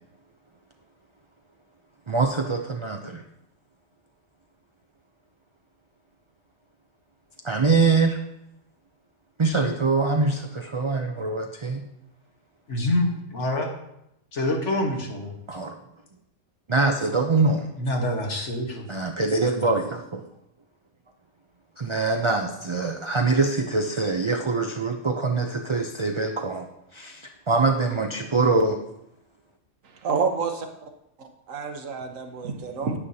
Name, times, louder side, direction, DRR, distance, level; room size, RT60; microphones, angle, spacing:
voice 1, 2.1-3.2 7.4-8.2 9.4-11.9 15.5-15.7 16.7-17.7 18.9-20.2 21.8-26.7 26.9-28.8, right 3 dB, 40° right, 4 dB, 0.4 m, -24 dB
voice 2, 12.7-13.7 14.3-15.3 17.8-18.9, left 1 dB, 60° left, 1 dB, 1.7 m, -26 dB
voice 3, 29.8-30.9 31.2-33.0, right 5 dB, 75° right, 5 dB, 1.4 m, -29 dB
9.8 x 9.3 x 2.8 m, 0.82 s
omnidirectional pair, 1.4 m